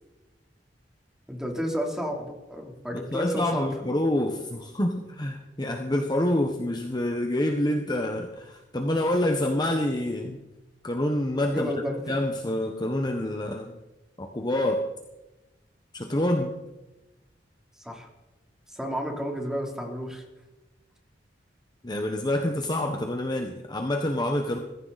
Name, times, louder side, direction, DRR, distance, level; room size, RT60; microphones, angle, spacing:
voice 1, 1.3-3.7 11.5-12.0 17.8-18.1 18.7-20.2, equal, 5° right, 0 dB, 3.4 m, -31 dB
voice 2, 2.9-10.4 10.8-11.7 12.1-13.7 14.2-14.9 15.9-16.6 21.8-24.6, left 1 dB, 25° left, 3 dB, 1.2 m, -27 dB
21.5 x 15.0 x 4.2 m, 1.1 s
head